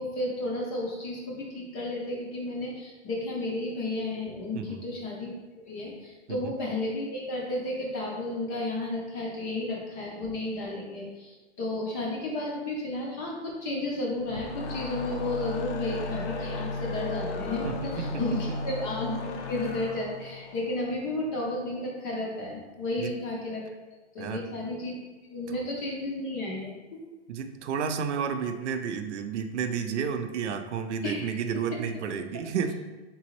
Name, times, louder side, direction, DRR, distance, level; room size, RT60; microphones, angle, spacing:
voice 1, 0.0-5.3 5.6-23.6 24.1-25.0 25.3-27.0 31.0-31.2 31.7-31.8, left 2 dB, 20° left, -2 dB, 0.5 m, -33 dB
sound 1, 14.1-21.5, left 2 dB, 80° left, 0.7 m, -35 dB
voice 2, 17.6-18.1 23.0-23.1 24.2-24.5 27.3-32.7, right 6 dB, 80° right, 7 dB, 0.6 m, -31 dB
4.0 x 3.7 x 3.0 m, 1.2 s
hypercardioid pair, 165°, 34 cm